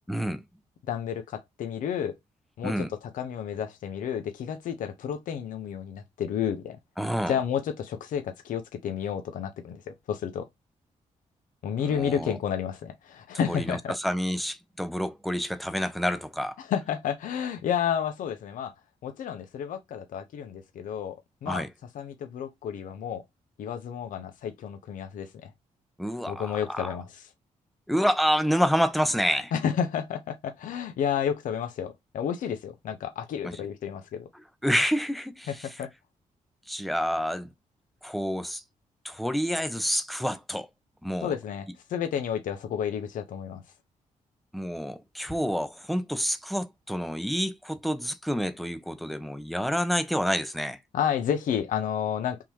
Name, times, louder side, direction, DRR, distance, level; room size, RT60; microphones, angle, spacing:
voice 1, 0.1-0.4 2.6-2.9 7.0-7.4 11.8-12.4 13.5-16.5 21.5-21.7 26.0-26.9 27.9-29.5 33.4-33.6 34.6-35.7 36.7-37.5 38.0-38.6 39.0-40.7 41.0-41.3 44.5-50.8, equal, ahead, 0.6 m, -28 dB
voice 2, 0.9-2.1 2.6-6.8 7.3-10.5 11.6-13.9 16.6-18.7 19.0-21.6 21.9-23.2 23.6-25.5 26.3-27.1 29.5-34.3 35.5-35.9 41.2-43.6 50.9-52.4, left 8 dB, 85° left, 0.8 m, -31 dB
3.7 x 2.8 x 4.7 m
cardioid pair, 95°, 13 cm